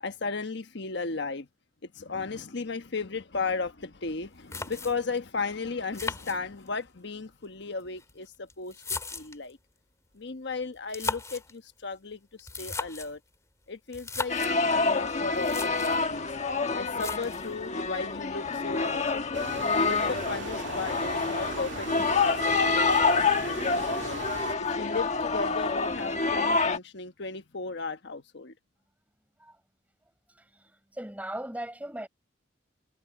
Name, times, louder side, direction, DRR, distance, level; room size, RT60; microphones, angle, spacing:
voice 1, 0.0-1.5 1.8-9.6 10.1-13.2 13.7-14.3 14.6-16.3 16.7-19.4 19.8-24.2 24.6-28.5, left 4 dB, 65° left, 1.2 m, -35 dB
sound 1, 4.1-4.2 4.5-5.2 5.9-6.9 7.8-9.5 10.8-11.5 12.4-13.2 13.9-14.6 15.1-15.2 15.4-16.0 17.0-17.6, left 3 dB, 15° left, 2.3 m, -36 dB
sound 2, 14.3-26.8, left 4 dB, 40° left, 1.4 m, -27 dB
sound 3, 19.3-24.6, right 3 dB, 85° right, 1.8 m, -38 dB
voice 2, 30.3-32.1, right 1 dB, 10° right, 6.1 m, -39 dB
head